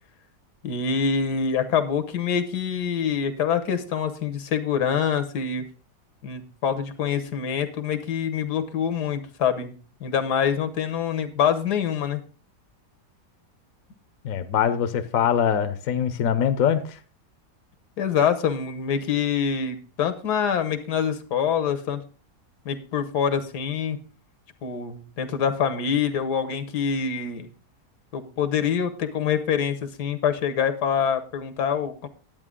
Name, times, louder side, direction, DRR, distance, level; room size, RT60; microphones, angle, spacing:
voice 1, 0.6-5.6 6.2-9.7 10.0-12.2 18.0-22.1 22.6-24.0 24.6-27.5 28.1-32.1, left 7 dB, 80° left, 9 dB, 1.6 m, -25 dB
voice 2, 14.2-17.0, left 8 dB, 65° left, 9 dB, 1.1 m, -23 dB
11.0 x 8.7 x 3.7 m, 0.38 s
omnidirectional pair, 1.7 m